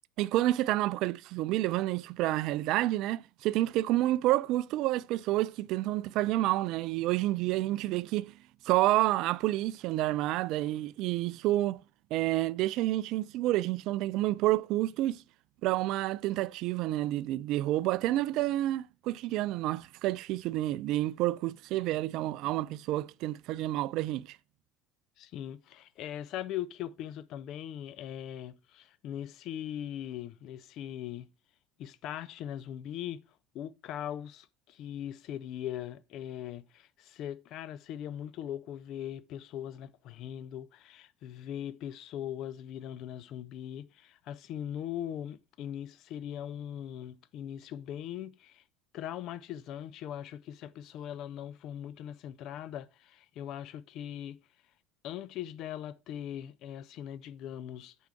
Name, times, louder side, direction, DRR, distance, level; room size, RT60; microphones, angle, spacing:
voice 1, 0.2-8.3 8.6-11.8 12.1-15.2 15.6-24.4, right 16 dB, 50° right, 0.3 m, -29 dB
voice 2, 25.2-31.3 31.8-33.2 33.5-48.6 48.9-54.4 55.0-57.9, left 10 dB, 50° left, 0.6 m, -40 dB
8.1 x 4.7 x 5.8 m
figure-of-eight pair, 65°, 0 cm